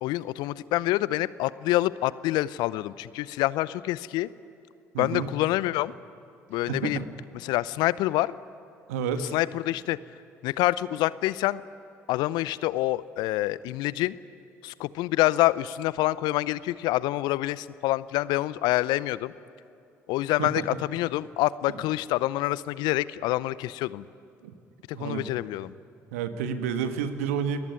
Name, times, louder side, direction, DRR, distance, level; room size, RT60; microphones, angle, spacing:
voice 1, 0.0-4.3 5.0-5.9 6.5-7.0 7.4-8.4 9.3-10.0 10.4-11.6 12.1-14.2 14.6-19.3 20.1-24.0 25.0-25.7, left 17 dB, 65° left, 19 dB, 0.6 m, -26 dB
voice 2, 4.9-5.3 6.7-7.1 8.9-9.3 20.4-20.6 24.4-24.5 24.9-25.2 26.1-27.6, right 7 dB, 80° right, 9 dB, 1.6 m, -30 dB
29.5 x 19.5 x 9.6 m, 2.5 s
hypercardioid pair, 50°, 8 cm